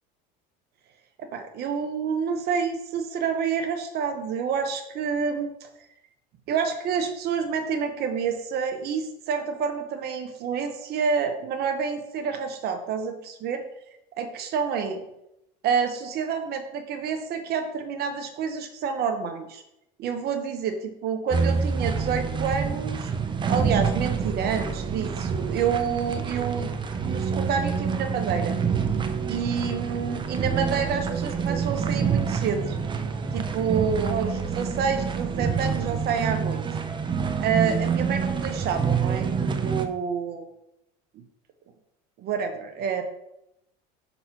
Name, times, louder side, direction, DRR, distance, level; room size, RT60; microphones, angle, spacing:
voice 1, 1.2-5.7 6.5-13.6 14.2-15.0 15.6-19.6 20.0-23.1 23.5-26.7 27.0-28.6 29.3-32.8 33.3-36.6 37.4-40.5 41.1-41.2 42.2-43.0, right 6 dB, 50° right, 7 dB, 0.9 m, -28 dB
sound 1, 21.3-39.8, right 6 dB, 25° right, 0.7 m, -27 dB
5.7 x 4.2 x 5.7 m, 0.84 s
supercardioid pair, 105°, 21 cm